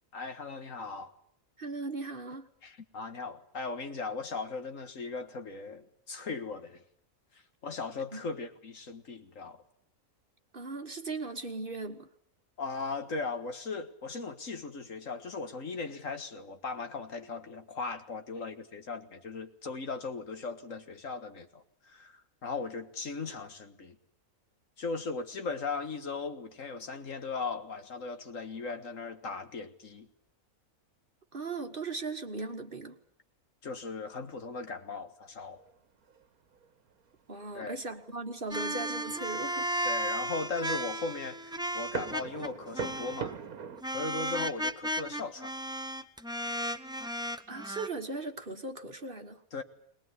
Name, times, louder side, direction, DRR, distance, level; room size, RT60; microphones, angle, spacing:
voice 1, 0.1-1.1 2.6-6.8 7.6-9.6 12.6-24.0 24.8-30.1 33.6-35.6 37.5-37.8 39.9-43.4 43.9-45.5 49.5-49.6, left 4 dB, 60° left, 8 dB, 1.9 m, -38 dB
voice 2, 1.6-2.5 8.1-8.2 10.5-12.1 31.3-33.0 37.3-39.7 47.5-49.4, right 3 dB, 40° right, 6 dB, 1.5 m, -38 dB
sound 1, 35.4-36.3 36.5-36.7 37.3-37.9 38.4-43.8, right 6 dB, 75° right, 1.7 m, -42 dB
sound 2, 38.5-42.5 42.7-43.3 43.8-47.9, right 1 dB, 5° right, 0.7 m, -34 dB
21.5 x 20.5 x 9.7 m, 0.66 s
omnidirectional pair, 1.6 m